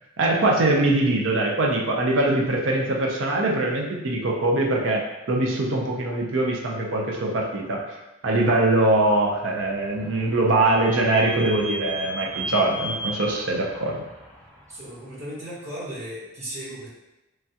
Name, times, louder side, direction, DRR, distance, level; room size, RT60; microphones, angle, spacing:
voice 1, 0.2-7.9 8.2-14.0, right 2 dB, 85° right, -1 dB, 0.6 m, -22 dB
Vehicle / Squeak, 9.2-14.8, equal, 5° left, 0.5 m, -36 dB
voice 2, 14.7-16.9, right 1 dB, 35° right, -6 dB, 0.8 m, -36 dB
3.2 x 2.3 x 2.7 m, 0.98 s
head